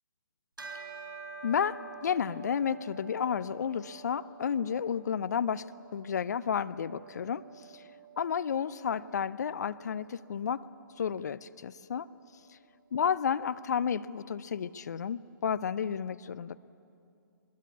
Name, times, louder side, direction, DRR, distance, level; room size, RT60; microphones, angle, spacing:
Bell, 0.6-10.3, right 5 dB, 70° right, 4.8 m, -49 dB
voice 1, 1.4-7.8 8.2-10.6 11.0-12.1 12.5-12.6 12.9-16.6, left 7 dB, 50° left, 16 dB, 0.7 m, -32 dB
21.5 x 21.0 x 9.5 m, 2.6 s
figure-of-eight pair, 130°, 11 cm